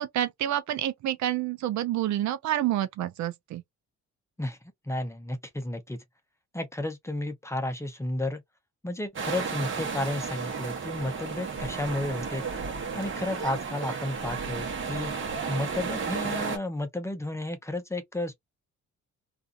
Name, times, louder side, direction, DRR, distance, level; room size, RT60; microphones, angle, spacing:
voice 1, 0.0-3.6, right 12 dB, 70° right, 0.5 m, -28 dB
voice 2, 4.9-6.0 6.5-8.4 8.8-12.4 12.9-15.1 15.5-18.3, left 1 dB, 10° left, 0.7 m, -32 dB
sound 1, 9.2-16.6, right 5 dB, 40° right, 1.0 m, -33 dB
2.5 x 2.4 x 2.5 m
cardioid pair, 90°, 30 cm